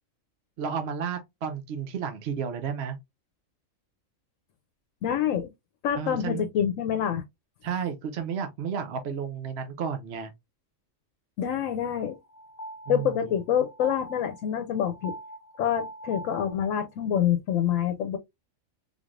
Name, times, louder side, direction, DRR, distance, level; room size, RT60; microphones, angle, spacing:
voice 1, 0.6-3.0 6.0-6.5 7.6-10.3 12.9-13.4, right 7 dB, 60° right, 0.8 m, -32 dB
voice 2, 5.0-5.5 5.8-7.2 11.4-12.2 12.9-15.1 15.6-18.2, left 9 dB, 75° left, 1.0 m, -26 dB
sound 1, 11.9-17.0, right 1 dB, 50° left, 0.5 m, -43 dB
3.8 x 3.2 x 2.4 m
omnidirectional pair, 1.4 m